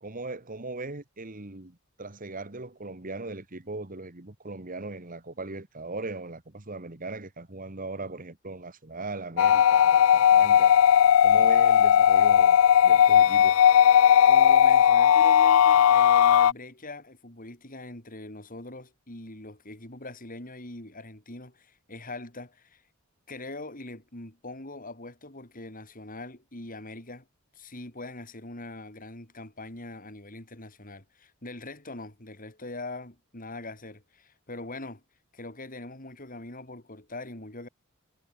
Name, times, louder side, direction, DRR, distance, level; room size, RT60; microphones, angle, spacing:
voice 1, 0.0-10.8 11.2-12.6 12.8-13.6, right 2 dB, 40° right, 1.9 m, -39 dB
sound 1, 9.4-16.5, left 9 dB, 70° left, 0.3 m, -18 dB
voice 2, 14.3-22.8 23.3-27.3 27.5-35.0 35.3-37.7, left 2 dB, 40° left, 5.7 m, -42 dB
head